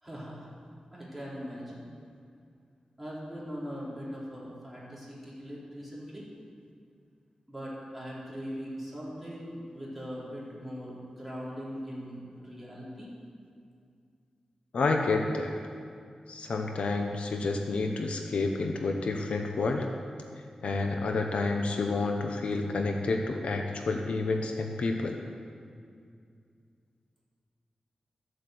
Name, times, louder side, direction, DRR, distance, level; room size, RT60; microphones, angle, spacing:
voice 1, 0.0-0.5 0.9-1.9 3.0-6.3 7.5-13.1, equal, ahead, -8 dB, 4.0 m, -40 dB
voice 2, 14.7-15.6 16.3-19.9 20.6-25.2, left 3 dB, 70° left, 3 dB, 1.0 m, -29 dB
14.0 x 8.0 x 7.9 m, 2.3 s
wide cardioid pair, 175°, 2 cm